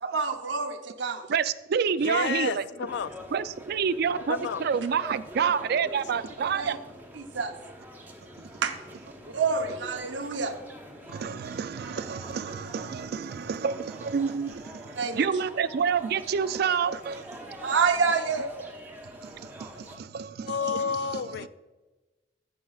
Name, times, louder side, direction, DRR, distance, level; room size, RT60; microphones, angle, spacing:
voice 1, 0.0-1.3 6.5-6.8 7.1-7.5 8.6-8.8 9.2-10.6 15.0-15.3 17.6-18.5, right 5 dB, 85° right, 0.8 m, -27 dB
voice 2, 1.3-2.6 3.3-6.8 8.4-8.5 11.1-17.4 19.2-20.9 21.4-21.5, right 6 dB, 60° right, 0.4 m, -28 dB
voice 3, 2.0-3.1 4.3-4.6 20.5-21.5, left 6 dB, 65° left, 0.4 m, -30 dB
sound 1, 2.9-20.0, equal, 10° right, 1.0 m, -45 dB
15.0 x 6.0 x 2.4 m
head